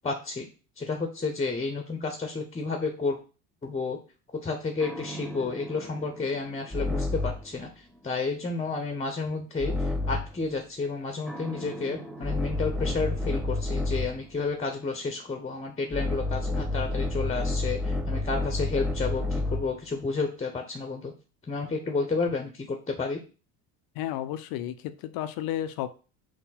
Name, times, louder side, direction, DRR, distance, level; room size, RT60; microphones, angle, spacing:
voice 1, 0.0-0.5 0.8-3.2 3.6-4.0 4.4-21.1 21.5-23.2, left 4 dB, 15° left, 4 dB, 0.8 m, -31 dB
sound 1, 4.8-7.6 9.6-10.4 11.3-14.3 15.9-19.8, left 2 dB, ahead, 0.4 m, -30 dB
voice 2, 24.0-25.9, left 12 dB, 50° left, 10 dB, 0.6 m, -32 dB
6.1 x 2.1 x 4.0 m, 0.35 s
hypercardioid pair, 75°, 46 cm